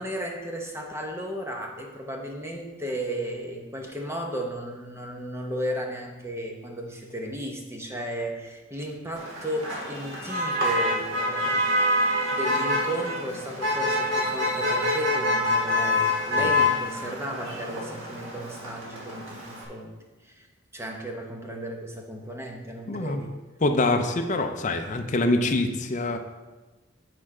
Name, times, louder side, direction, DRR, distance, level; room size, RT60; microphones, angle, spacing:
voice 1, 0.0-20.0 20.2-20.5 20.7-23.4, right 1 dB, 15° right, 1 dB, 0.8 m, -34 dB
Motor vehicle (road), 9.1-19.6, left 1 dB, 75° right, 1.7 m, -26 dB
voice 2, 22.9-23.2 23.6-26.2, left 2 dB, 35° left, 5 dB, 0.6 m, -25 dB
8.6 x 4.3 x 4.8 m, 1.2 s
head